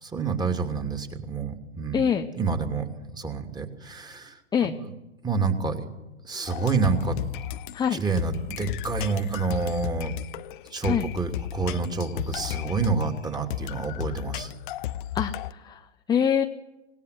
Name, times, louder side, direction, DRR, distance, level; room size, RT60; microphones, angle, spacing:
voice 1, 0.0-2.9 3.1-4.4 4.7-4.9 5.2-5.8 6.2-7.2 7.9-10.1 10.7-14.5, right 4 dB, 10° right, 5 dB, 2.7 m, -28 dB
voice 2, 1.9-2.3 4.5-4.8 7.7-8.0 10.8-11.1 15.1-16.4, left 8 dB, 10° left, 4 dB, 0.9 m, -25 dB
sound 1, 6.5-15.5, left 13 dB, 45° left, 0.9 m, -34 dB
25.5 x 18.5 x 9.6 m, 1.0 s
figure-of-eight pair, 110°, 35 cm